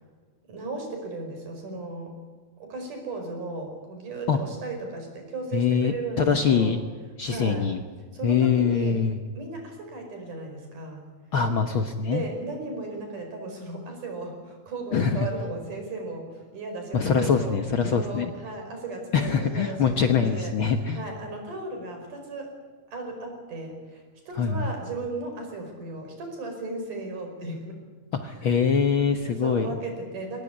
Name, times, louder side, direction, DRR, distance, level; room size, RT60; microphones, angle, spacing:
voice 1, 0.5-2.1 2.6-6.8 7.2-7.7 8.1-9.0 9.3-11.1 12.0-17.6 17.9-22.5 22.9-27.8 28.3-28.5 29.4-30.4, right 3 dB, 80° right, 3 dB, 6.7 m, -36 dB
voice 2, 5.5-6.8 7.2-7.8 8.2-9.2 11.3-12.2 14.9-15.3 16.9-18.3 19.1-21.0 24.3-24.7 28.2-29.8, left 6 dB, 60° left, 6 dB, 1.4 m, -23 dB
23.0 x 18.5 x 9.8 m, 1.4 s
omnidirectional pair, 3.6 m